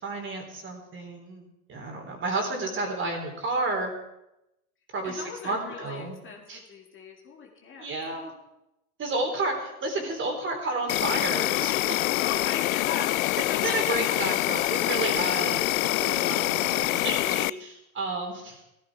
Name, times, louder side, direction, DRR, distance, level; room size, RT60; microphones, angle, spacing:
voice 1, 0.0-3.9 4.9-6.2 6.5-6.6 7.8-8.3 9.0-12.3 13.6-18.6, right 2 dB, 25° right, 4 dB, 3.6 m, -31 dB
voice 2, 5.0-7.9 12.2-14.8, left 5 dB, 25° left, 0 dB, 2.3 m, -39 dB
Insect, 10.9-17.5, left 18 dB, 65° left, 0.5 m, -25 dB
16.0 x 14.0 x 4.8 m, 0.89 s
hypercardioid pair, 105°, 44 cm